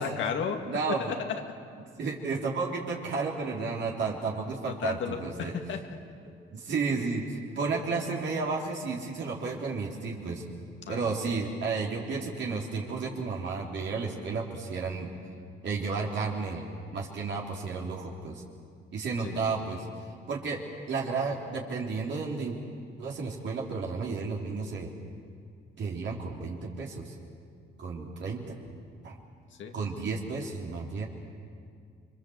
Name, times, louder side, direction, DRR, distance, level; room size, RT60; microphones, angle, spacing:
voice 1, 0.0-0.6 0.9-1.5 4.7-5.8 10.8-11.3 19.2-19.7 29.5-30.1, left 7 dB, 75° left, 4 dB, 2.5 m, -35 dB
voice 2, 0.6-1.1 2.0-5.5 6.3-10.4 10.9-15.1 15.6-16.7 16.9-18.4 18.9-19.8 20.3-20.6 20.9-22.6 23.0-24.9 25.8-27.1 27.8-28.4 29.0-29.2 29.7-31.1, right 4 dB, 65° right, -2 dB, 3.5 m, -32 dB
28.5 x 24.0 x 8.0 m, 2.3 s
cardioid pair, 90°, 20 cm